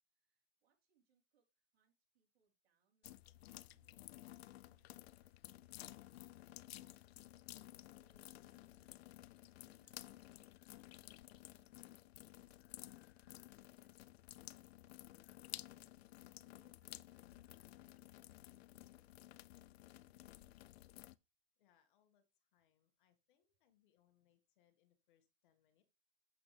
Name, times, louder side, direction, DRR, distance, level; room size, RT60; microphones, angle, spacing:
voice 1, 0.1-7.3 7.7-10.3 10.6-12.1 12.4-14.1 15.5-16.0 16.4-20.6, right 6 dB, 75° right, 0 dB, 4.0 m, -83 dB
sound 1, 3.0-21.2, left 15 dB, 80° left, 0.5 m, -55 dB
voice 2, 21.6-25.8, left 10 dB, 55° left, 8 dB, 1.8 m, -78 dB
8.5 x 8.0 x 3.3 m, 0.26 s
supercardioid pair, 160°, 31 cm